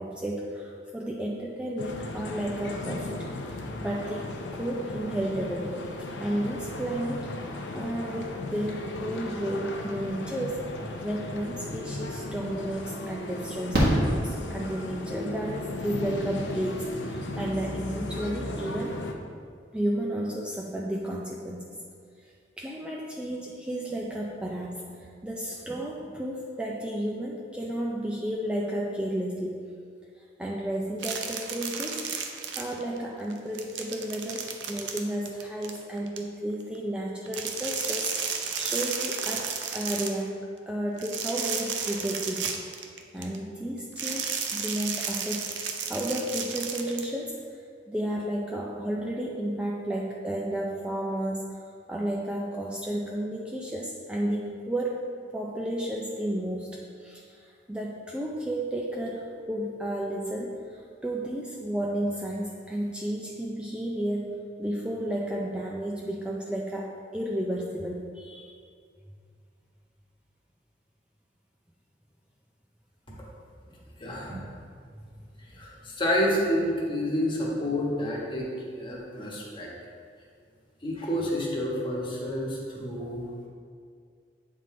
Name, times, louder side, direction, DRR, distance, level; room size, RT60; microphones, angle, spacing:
voice 1, 0.0-5.7 6.2-7.3 7.7-10.7 11.0-19.0 19.7-21.7 22.2-29.6 30.2-32.1 32.6-42.5 43.1-45.5 45.9-51.6 51.9-55.0 55.3-68.5 74.9-75.2, right 1 dB, 5° right, -3 dB, 0.4 m, -32 dB
sound 1, 1.8-19.1, left 2 dB, 90° left, 0.6 m, -36 dB
Fireworks, 12.0-12.1 13.7-15.0 16.8-16.9 17.1-17.2, equal, 60° right, 1.6 m, -25 dB
sound 2, 31.0-33.0 33.3-36.2 37.3-40.2 41.0-43.4 44.0-47.1, right 6 dB, 85° right, 0.6 m, -33 dB
voice 2, 74.0-74.4 75.5-79.7 80.8-83.3, equal, 30° left, -4 dB, 1.2 m, -29 dB
8.2 x 3.7 x 3.7 m, 2.2 s
head